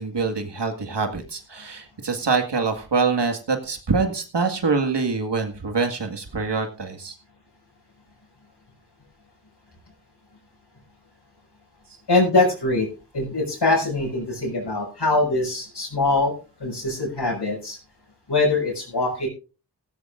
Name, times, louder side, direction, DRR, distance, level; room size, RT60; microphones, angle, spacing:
voice 1, 0.0-7.2, right 4 dB, 70° right, 5 dB, 2.0 m, -25 dB
voice 2, 12.1-12.9 13.1-16.3 16.6-17.8 18.3-19.3, left 2 dB, 70° left, -4 dB, 7.0 m, -22 dB
17.0 x 15.5 x 2.5 m, 0.33 s
wide cardioid pair, 60°, 43 cm